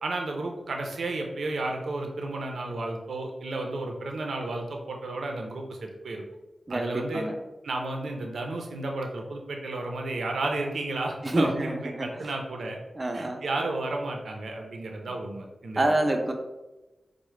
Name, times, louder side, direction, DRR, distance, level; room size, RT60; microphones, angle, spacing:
voice 1, 0.0-6.2 6.7-7.2 7.6-12.8 13.1-15.9, right 2 dB, 90° right, 2 dB, 0.4 m, -32 dB
voice 2, 6.7-7.4 11.2-12.1 13.0-13.4 15.8-16.3, right 1 dB, 35° right, 4 dB, 0.5 m, -27 dB
4.6 x 2.0 x 3.1 m, 1.1 s
wide cardioid pair, 95°, 0 cm